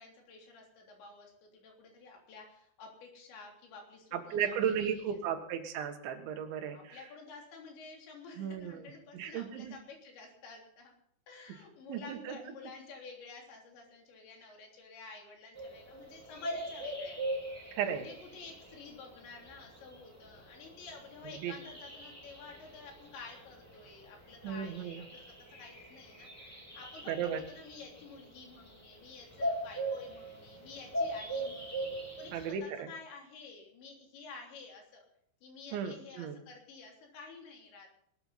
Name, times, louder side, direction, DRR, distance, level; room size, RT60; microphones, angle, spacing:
voice 1, 0.0-5.2 6.7-10.9 11.3-17.2 17.9-26.3 26.8-31.9 32.2-35.1 35.4-37.9, left 4 dB, 80° left, 0 dB, 5.7 m, -51 dB
voice 2, 4.1-7.0 8.4-8.8 9.1-9.8 11.9-12.4 17.7-18.1 21.4-21.5 24.4-25.0 27.1-27.4 32.3-32.9 35.7-36.4, right 8 dB, 90° right, 6 dB, 3.9 m, -35 dB
sound 1, 15.5-32.5, right 1 dB, 5° left, 3.0 m, -41 dB
20.5 x 13.5 x 4.2 m, 0.65 s
omnidirectional pair, 5.1 m